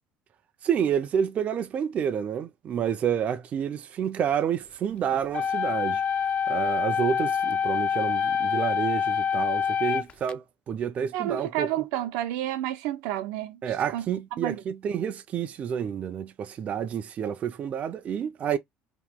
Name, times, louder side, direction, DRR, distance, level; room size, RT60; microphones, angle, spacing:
voice 1, 0.6-6.0 6.5-11.7 13.6-18.6, right 8 dB, 40° right, 0.4 m, -29 dB
sound 1, 5.3-10.3, left 7 dB, 30° left, 0.3 m, -26 dB
voice 2, 11.1-13.6 13.9-14.0 14.4-14.6, right 13 dB, 85° right, 0.6 m, -30 dB
2.9 x 2.2 x 3.4 m
cardioid pair, 125°, 4 cm